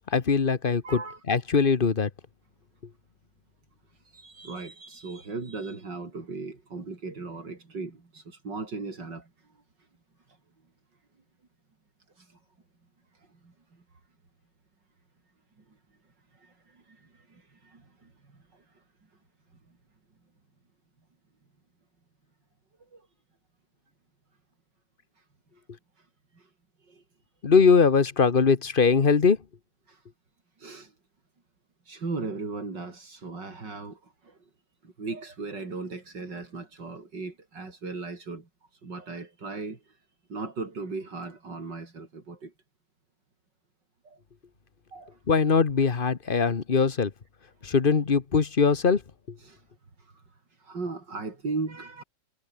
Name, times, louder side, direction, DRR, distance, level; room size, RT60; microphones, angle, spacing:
voice 1, 0.1-1.0 1.3-2.1 27.4-29.4 45.3-47.1 47.6-49.0, left 5 dB, 35° left, 1.2 m, -21 dB
voice 2, 0.8-1.2 4.1-9.3 12.2-12.4 13.4-13.5 16.4-18.1 18.5-18.6 22.9-23.1 26.4-26.5 26.9-27.0 29.9-30.0 30.6-30.9 31.9-34.4 34.8-38.5 38.8-39.8 40.3-42.5 44.0-44.2 44.9-45.2 49.4-49.6 50.0-50.2 50.6-52.0, right 3 dB, 80° right, 4.7 m, -37 dB
omnidirectional pair, 1.9 m